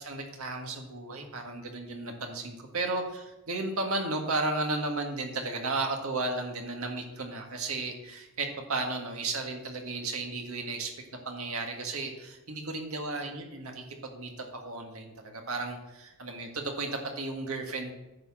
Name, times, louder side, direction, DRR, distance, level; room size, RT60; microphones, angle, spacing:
voice 1, 0.0-10.9 11.3-17.9, right 2 dB, 80° right, 3 dB, 1.7 m, -34 dB
10.5 x 4.4 x 7.4 m, 0.97 s
head